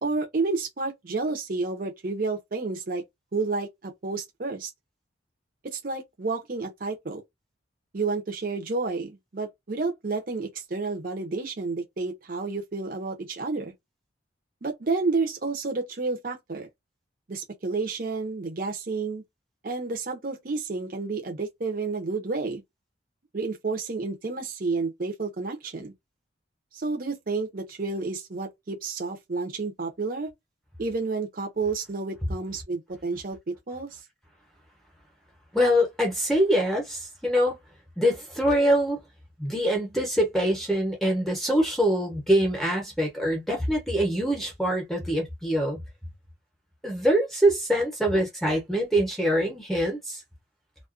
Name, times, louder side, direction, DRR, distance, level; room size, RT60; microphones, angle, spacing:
voice 1, 0.0-3.0 3.3-4.7 5.6-7.2 7.9-13.7 14.6-16.7 17.3-19.2 19.6-22.6 23.3-25.9 26.7-30.3 30.8-34.0, right 3 dB, 50° right, 0.6 m, -30 dB
voice 2, 35.5-37.6 38.0-39.0 39.4-45.8 46.8-50.2, equal, ahead, 0.7 m, -24 dB
2.3 x 2.2 x 2.4 m
head